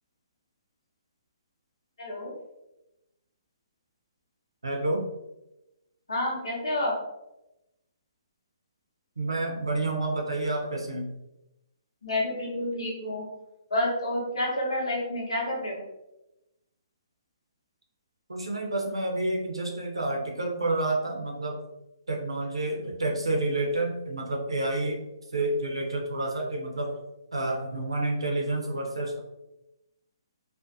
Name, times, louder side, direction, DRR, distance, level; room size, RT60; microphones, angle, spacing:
voice 1, 2.0-2.3 6.1-7.0 12.0-13.2 13.7-15.8, left 1 dB, 80° left, -3 dB, 0.8 m, -29 dB
voice 2, 4.6-5.0 9.2-11.1 18.3-21.6 22.1-25.0 25.3-26.9 27.3-29.2, right 2 dB, 90° right, 1 dB, 0.6 m, -29 dB
2.4 x 2.1 x 2.6 m, 0.92 s
hypercardioid pair, 140°, 3 cm